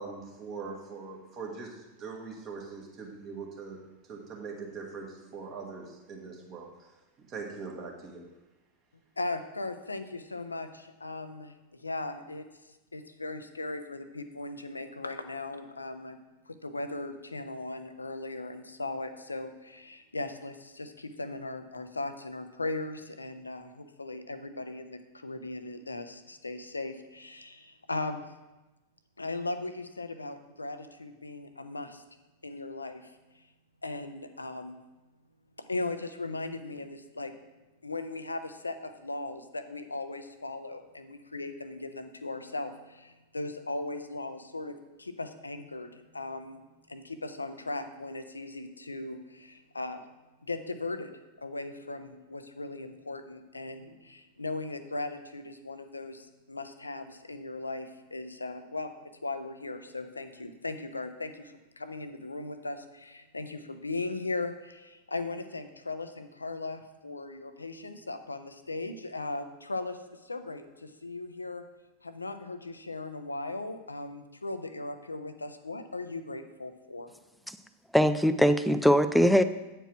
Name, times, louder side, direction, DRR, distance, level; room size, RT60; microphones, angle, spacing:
voice 1, 0.0-3.8 4.1-6.7 7.3-8.2, right 4 dB, 35° right, -1 dB, 1.9 m, -41 dB
voice 2, 9.2-12.5 12.9-16.2 16.5-28.2 29.2-32.0 32.4-33.5 33.8-34.8 35.6-37.3 37.8-46.6 46.9-50.0 50.4-51.1 51.4-71.7 72.0-77.1, left 2 dB, 80° left, 10 dB, 0.6 m, -38 dB
voice 3, 77.9-79.4, equal, ahead, 11 dB, 0.4 m, -22 dB
8.9 x 4.6 x 6.1 m, 1.1 s
figure-of-eight pair, 90°, 0 cm